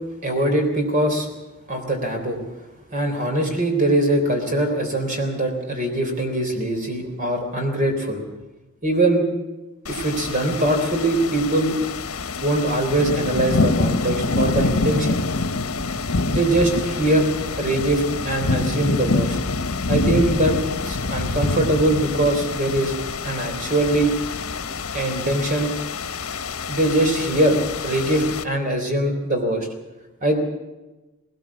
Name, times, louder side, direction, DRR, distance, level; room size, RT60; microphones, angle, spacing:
voice 1, 0.2-1.3 1.7-2.4 2.9-8.2 8.8-9.3 9.9-11.8 12.4-15.2 16.3-17.3 17.6-19.4 19.9-20.6 20.8-22.9 23.2-24.1 24.9-25.7 26.7-29.7 30.2-30.4, right 1 dB, 35° right, 4 dB, 3.7 m, -22 dB
sound 1, 9.9-28.4, left 3 dB, 75° left, 1.2 m, -26 dB
19.0 x 18.5 x 7.3 m, 1.1 s
head